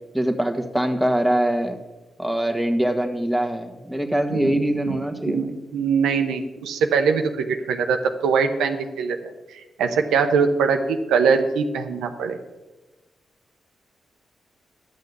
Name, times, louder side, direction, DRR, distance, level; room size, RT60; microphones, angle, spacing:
voice 1, 0.1-1.8 2.2-5.6, right 1 dB, ahead, 4 dB, 1.4 m, -23 dB
voice 2, 4.3-4.6 4.9-5.0 5.3-5.5 5.7-9.2 9.5-12.4, right 5 dB, 85° right, 6 dB, 0.7 m, -22 dB
11.0 x 6.5 x 6.8 m, 1.1 s
supercardioid pair, 50°, 0 cm